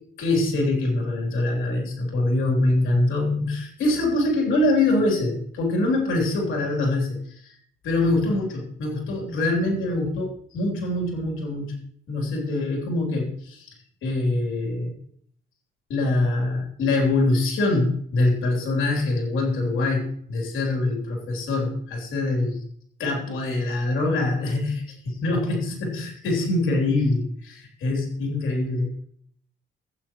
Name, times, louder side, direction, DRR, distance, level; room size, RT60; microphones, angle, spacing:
voice 1, 0.2-7.6 7.8-11.8 12.1-13.8 14.0-14.9 15.9-22.6 23.0-29.0, left 2 dB, 85° left, 0 dB, 3.4 m, -24 dB
15.5 x 8.6 x 3.1 m, 0.63 s
cardioid pair, 90°, 20 cm